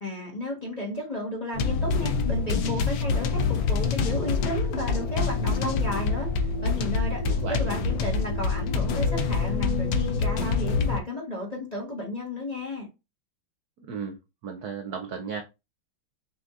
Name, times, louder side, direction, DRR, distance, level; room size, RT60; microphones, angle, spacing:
voice 1, 0.0-7.2 7.5-12.9, left 1 dB, 25° left, 1.0 m, -33 dB
sound 1, 1.5-11.0, left 4 dB, 75° left, 0.8 m, -26 dB
voice 2, 7.3-7.7 13.8-14.2 14.4-15.4, right 6 dB, 75° right, 0.8 m, -35 dB
6.8 x 2.6 x 2.4 m
omnidirectional pair, 2.4 m